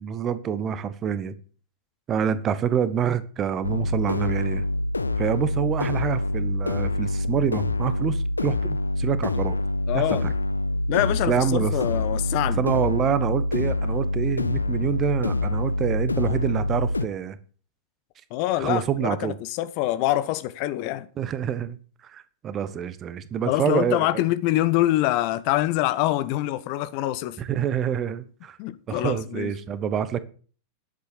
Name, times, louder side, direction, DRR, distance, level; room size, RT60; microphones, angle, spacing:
voice 1, 0.0-1.3 2.1-4.6 5.2-9.6 9.9-10.3 11.3-11.7 12.6-17.4 18.6-19.4 21.2-21.8 22.1-24.2 27.4-28.6 28.9-30.2, right 8 dB, 30° right, 1.1 m, -27 dB
sound 1, 3.6-17.1, left 1 dB, 80° left, 0.6 m, -26 dB
voice 2, 9.9-10.3 10.9-12.6 18.3-21.1 23.5-27.4 28.6-29.5, left 15 dB, 45° left, 1.1 m, -25 dB
10.5 x 8.2 x 8.5 m
figure-of-eight pair, 90°, 0 cm